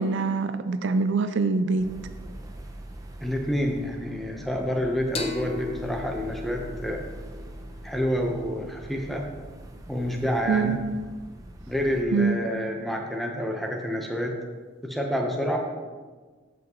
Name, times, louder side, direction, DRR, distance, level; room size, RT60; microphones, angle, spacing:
voice 1, 0.0-1.9 10.5-10.8 12.1-12.4, right 4 dB, 60° right, 10 dB, 0.4 m, -24 dB
sound 1, 1.8-12.0, right 1 dB, 15° right, 0.6 m, -42 dB
voice 2, 3.2-7.0 7.8-9.3 9.9-10.8 11.7-14.4 14.8-15.6, equal, ahead, 0 dB, 0.9 m, -28 dB
sound 2, 5.2-8.5, left 4 dB, 30° left, 0.7 m, -37 dB
13.5 x 6.1 x 3.1 m, 1.4 s
head